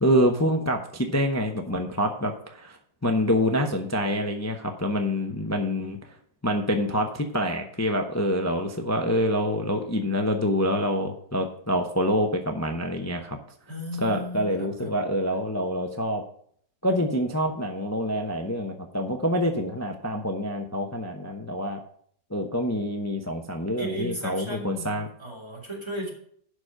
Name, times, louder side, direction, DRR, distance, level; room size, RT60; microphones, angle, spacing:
voice 1, 0.0-6.0 6.4-13.4 14.0-16.2 16.8-21.8 22.3-25.1, equal, 20° left, 4 dB, 0.4 m, -26 dB
voice 2, 13.7-15.0 23.8-26.1, equal, 15° right, -2 dB, 3.1 m, -35 dB
11.5 x 5.2 x 6.4 m, 0.63 s
omnidirectional pair, 1.9 m